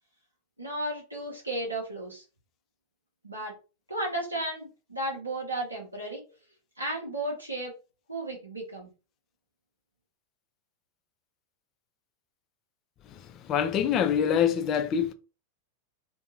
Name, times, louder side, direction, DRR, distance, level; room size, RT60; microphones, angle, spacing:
voice 1, 0.6-2.2 3.2-3.5 3.9-6.2 6.8-7.8 8.1-8.9, right 1 dB, 85° right, 0.8 m, -34 dB
voice 2, 13.4-15.1, left 8 dB, 35° left, 0.4 m, -25 dB
2.6 x 2.2 x 2.7 m
figure-of-eight pair, 90°, 0 cm